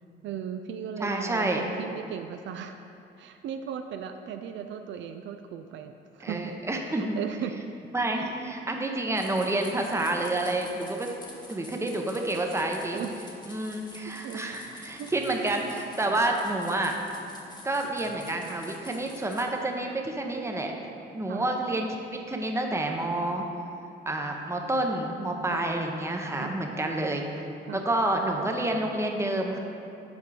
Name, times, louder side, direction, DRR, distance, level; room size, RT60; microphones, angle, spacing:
voice 1, 0.2-2.8 3.2-6.5 6.9-7.6 8.1-8.4 12.9-13.2 14.0-14.6 15.0-15.1 21.3-21.5 25.5-25.7 26.4-26.6 27.6-27.8, right 8 dB, 70° right, 7 dB, 0.4 m, -37 dB
voice 2, 1.0-1.6 6.2-7.2 7.9-11.1 11.5-13.0 13.5-16.9 17.6-20.7 21.1-23.4 24.1-27.2 27.7-29.6, right 2 dB, 15° right, 2 dB, 0.7 m, -29 dB
sound 1, 9.1-19.4, left 2 dB, 20° left, 1.2 m, -48 dB
7.2 x 4.4 x 4.8 m, 2.7 s
cardioid pair, 90°, 20 cm